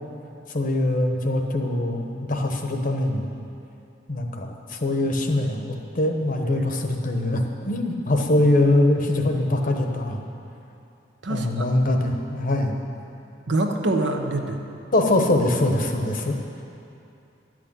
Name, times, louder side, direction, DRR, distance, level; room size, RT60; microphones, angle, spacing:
voice 1, 0.5-3.3 4.1-10.2 11.3-12.8 14.9-16.3, left 1 dB, 50° left, 3 dB, 1.1 m, -23 dB
voice 2, 11.2-11.7 13.5-14.6, right 2 dB, 70° right, 3 dB, 1.0 m, -25 dB
11.5 x 6.3 x 8.9 m, 2.7 s
head